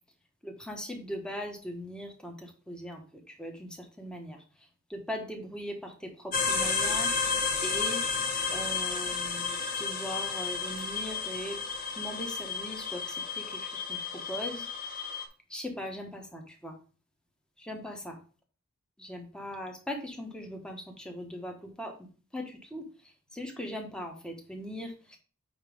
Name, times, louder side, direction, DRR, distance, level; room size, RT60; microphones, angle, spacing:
voice 1, 0.4-4.4 4.9-7.1 7.6-8.0 8.5-11.6 12.0-14.0 14.3-14.7 15.5-16.7 17.6-18.2 19.0-21.9 22.3-22.9 23.3-25.2, equal, 5° left, 2 dB, 1.2 m, -39 dB
sound 1, 6.3-15.2, left 5 dB, 40° left, 1.1 m, -32 dB
8.7 x 3.0 x 5.0 m, 0.38 s
head